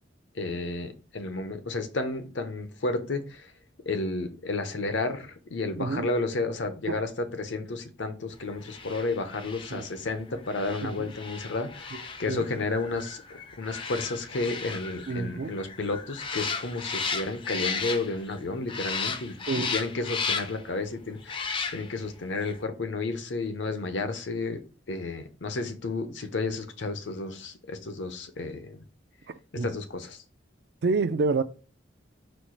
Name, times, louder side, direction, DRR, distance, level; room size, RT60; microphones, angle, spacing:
voice 1, 0.3-3.5 3.9-19.4 19.7-24.6 24.9-28.8 29.5-30.2, left 3 dB, 75° left, 0.7 m, -32 dB
voice 2, 5.8-6.1 6.9-7.0 9.7-9.9 10.8-11.1 11.9-12.0 12.3-12.4 15.1-15.5 19.5-19.7 29.5-29.7 30.8-31.4, right 4 dB, 55° right, 0.4 m, -28 dB
sound 1, 8.6-18.4 18.7-20.7 21.2-22.1 22.4-22.6, left 5 dB, 25° left, 0.4 m, -35 dB
4.3 x 2.4 x 4.4 m
head